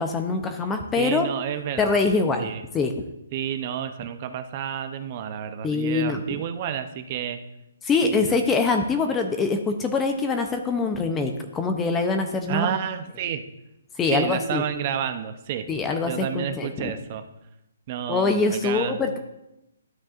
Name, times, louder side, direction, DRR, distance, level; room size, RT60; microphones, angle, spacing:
voice 1, 0.0-1.3 1.8-2.5 2.7-2.9 5.6-6.2 7.8-12.8 14.0-14.6 15.7-16.9 18.1-19.2, left 4 dB, 10° left, 5 dB, 0.6 m, -24 dB
voice 2, 1.0-2.0 2.4-2.6 3.3-7.4 8.0-8.3 12.5-13.4 14.1-15.7 16.1-17.2 17.9-19.2, right 9 dB, 35° right, 9 dB, 0.6 m, -30 dB
12.0 x 7.4 x 2.5 m, 0.89 s
hypercardioid pair, 160°, 0 cm